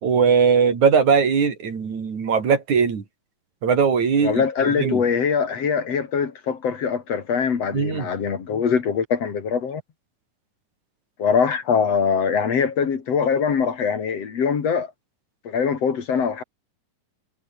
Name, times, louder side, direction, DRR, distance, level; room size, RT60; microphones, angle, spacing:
voice 1, 0.0-3.0 3.6-4.4 4.8-5.0 7.7-8.1, right 6 dB, 80° right, 4.9 m, -19 dB
voice 2, 4.2-9.8 11.2-14.9 15.5-16.4, left 6 dB, 60° left, 3.5 m, -22 dB
omnidirectional pair, 3.3 m